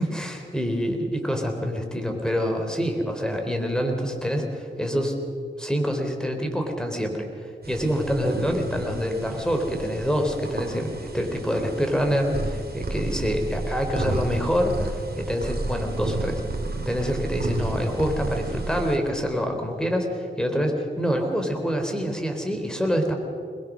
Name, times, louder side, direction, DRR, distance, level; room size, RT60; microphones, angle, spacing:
voice 1, 0.0-5.2 5.6-16.4 16.9-23.1, equal, 5° left, 3 dB, 3.9 m, -26 dB
sound 1, 7.6-19.0, right 2 dB, 50° right, 2.9 m, -32 dB
22.0 x 21.0 x 6.3 m, 2.4 s
cardioid pair, 55°, 20 cm